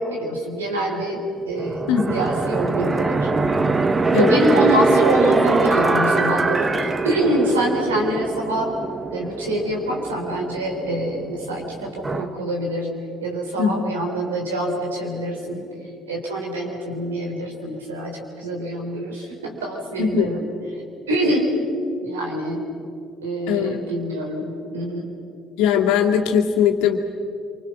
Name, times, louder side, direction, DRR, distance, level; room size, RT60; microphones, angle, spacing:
voice 1, 0.0-1.8 2.1-3.3 4.1-8.7 9.1-12.9 13.2-15.7 16.1-20.5 21.1-21.5 22.0-22.6 23.2-25.1, right 1 dB, 90° right, 0 dB, 4.1 m, -25 dB
sound 1, 1.6-12.3, right 3 dB, 30° right, 1.3 m, -22 dB
voice 2, 1.9-2.2 4.1-4.3 13.6-13.9 20.0-20.3 23.5-23.8 25.6-27.0, left 8 dB, 75° left, 2 dB, 2.2 m, -20 dB
27.5 x 25.0 x 6.1 m, 2.6 s
hypercardioid pair, 55°, 0 cm